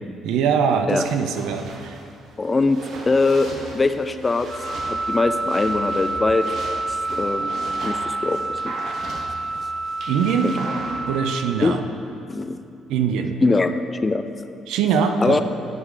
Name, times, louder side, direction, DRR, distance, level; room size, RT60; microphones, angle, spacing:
voice 1, 0.2-2.0 10.1-10.5 11.1-11.8 12.9-13.4 14.7-15.4, right 6 dB, 85° right, 7 dB, 0.5 m, -22 dB
sound 1, 1.0-11.1, right 2 dB, 60° right, 1.1 m, -38 dB
voice 2, 2.4-3.5 3.7-4.5 4.8-6.5 7.1-7.4 7.8-8.7 10.4-10.6 11.6-11.8 12.3-12.6 13.4-13.7 14.0-14.3 15.2-15.4, left 3 dB, 20° left, 10 dB, 0.3 m, -21 dB
Wind instrument woodwind instrument, 4.5-11.4, right 2 dB, 35° right, 1.1 m, -28 dB
9.5 x 6.2 x 3.8 m, 2.5 s
cardioid pair, 135°, 0 cm